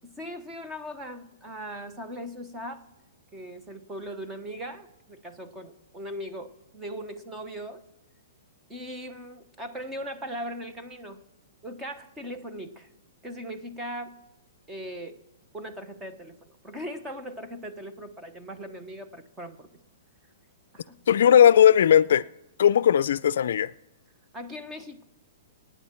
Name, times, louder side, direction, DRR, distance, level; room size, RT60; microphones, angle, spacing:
voice 1, 0.0-2.9 3.3-7.8 8.7-11.2 11.6-12.9 13.2-14.2 14.7-15.2 15.5-19.7 20.7-21.0 24.3-25.0, equal, 10° right, 0.9 m, -39 dB
voice 2, 21.1-22.2 22.6-23.7, left 9 dB, 65° left, 0.4 m, -18 dB
25.5 x 9.3 x 4.4 m
hypercardioid pair, 165°, 0 cm